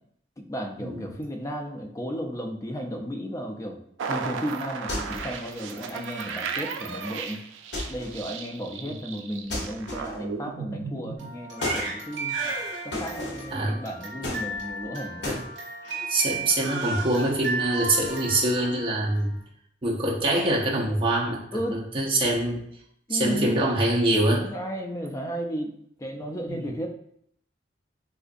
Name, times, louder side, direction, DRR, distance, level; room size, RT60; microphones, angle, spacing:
voice 1, 0.4-3.8 4.1-7.4 7.9-12.3 12.8-15.4 21.5-21.8 23.1-23.6 24.4-26.9, equal, 15° left, 2 dB, 0.3 m, -34 dB
sound 1, 4.0-11.2, right 5 dB, 90° right, 0.3 m, -35 dB
sound 2, 4.9-5.4 7.7-8.2 9.5-10.3 11.6-11.9 12.9-13.5 14.2-14.8 15.2-15.5, left 1 dB, 60° left, 0.8 m, -33 dB
Crying sobbing, 11.2-19.4, right 3 dB, 70° right, 1.0 m, -34 dB
voice 2, 16.1-19.4 19.8-21.4 21.7-22.6 23.1-24.5 26.5-26.7, right 1 dB, 25° right, -3 dB, 0.6 m, -24 dB
3.8 x 2.4 x 2.5 m, 0.71 s
head